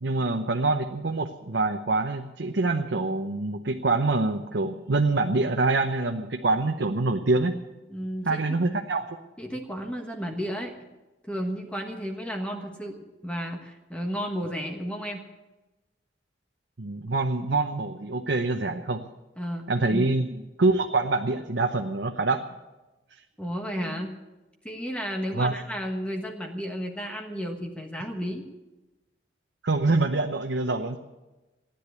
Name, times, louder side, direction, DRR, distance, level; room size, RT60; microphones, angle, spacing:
voice 1, 0.0-7.6 8.3-9.1 16.8-19.0 19.7-22.4 23.7-23.8 25.3-25.5 29.6-31.0, right 3 dB, 90° right, 3 dB, 0.9 m, -25 dB
voice 2, 7.9-8.4 9.4-10.8 11.3-15.2 19.4-20.1 23.4-24.2 24.6-28.5, equal, 5° left, 3 dB, 1.3 m, -33 dB
15.0 x 10.5 x 8.1 m, 1.1 s
head